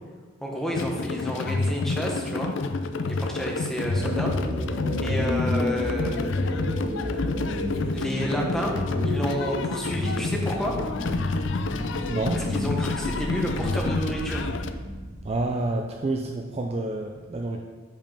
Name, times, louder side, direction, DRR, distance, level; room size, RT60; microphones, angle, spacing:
voice 1, 0.4-2.5 3.1-4.3 5.0-6.3 7.9-8.8 9.0-10.8 12.3-14.5, equal, ahead, -1 dB, 0.8 m, -30 dB
sound 1, 0.7-14.7, left 3 dB, 60° left, 0.4 m, -29 dB
sound 2, 3.9-15.5, equal, 55° right, 1.2 m, -32 dB
voice 2, 12.1-12.4 15.2-17.6, right 2 dB, 30° right, 2 dB, 0.3 m, -28 dB
5.3 x 5.2 x 5.3 m, 1.4 s
head